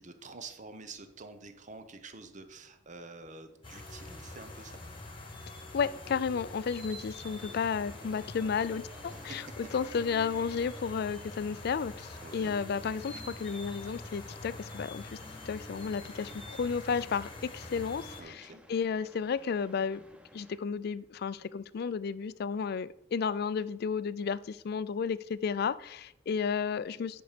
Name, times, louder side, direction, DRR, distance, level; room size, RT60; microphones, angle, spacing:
voice 1, 0.0-4.8 9.1-9.4 12.2-12.6 18.2-18.6, right 3 dB, 40° right, 9 dB, 0.9 m, -48 dB
sound 1, 3.6-18.2, left 2 dB, 30° left, 1.4 m, -45 dB
voice 2, 5.7-9.4 9.7-15.2 15.5-20.0 20.3-27.2, left 6 dB, 55° left, 17 dB, 0.4 m, -33 dB
sound 2, 7.4-20.6, equal, 5° right, 0.7 m, -56 dB
9.8 x 5.4 x 5.0 m, 0.83 s
head